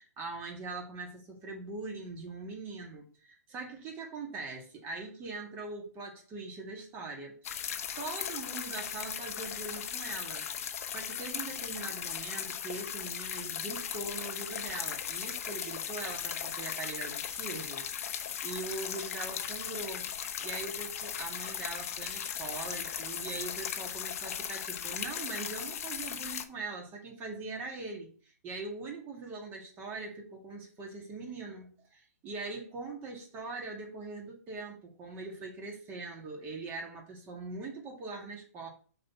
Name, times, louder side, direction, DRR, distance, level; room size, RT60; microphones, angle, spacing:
voice 1, 0.0-7.6 8.0-10.5 10.9-20.1 20.4-28.1 28.4-38.7, right 3 dB, 25° right, 0 dB, 2.1 m, -42 dB
sound 1, 7.4-26.4, left 8 dB, 60° left, 0.9 m, -37 dB
6.5 x 4.1 x 5.8 m, 0.42 s
hypercardioid pair, 150°, 9 cm